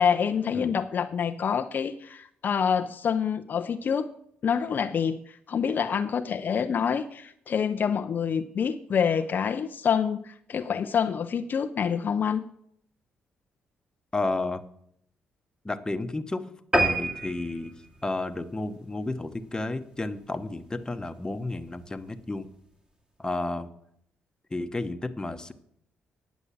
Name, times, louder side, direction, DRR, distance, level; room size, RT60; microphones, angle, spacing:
voice 1, 0.0-4.1 4.4-12.4, left 7 dB, 55° left, 9 dB, 0.5 m, -27 dB
voice 2, 14.1-14.6 15.6-16.5 16.8-17.7 18.0-22.5 23.2-23.7 24.5-25.5, left 2 dB, 20° left, 9 dB, 1.0 m, -32 dB
sound 1, 16.7-19.5 19.9-20.1 20.6-20.7 21.0-21.1 21.3-21.4, right 1 dB, 20° right, 2.1 m, -29 dB
9.8 x 7.2 x 7.1 m, 0.69 s
supercardioid pair, 70°, 4 cm